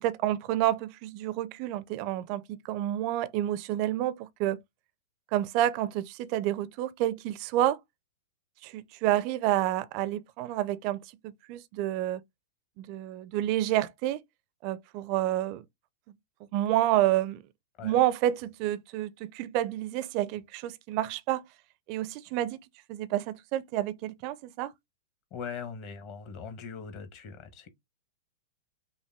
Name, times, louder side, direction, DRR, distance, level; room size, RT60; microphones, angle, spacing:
voice 1, 0.0-4.6 5.3-7.8 8.6-12.2 12.8-14.2 14.6-15.6 16.5-17.4 17.8-21.4 21.9-22.6 22.9-24.7, right 13 dB, 40° right, 0.5 m, -29 dB
voice 2, 25.3-27.7, left 6 dB, 35° left, 1.2 m, -40 dB
5.7 x 2.2 x 3.4 m
figure-of-eight pair, 100°, 0 cm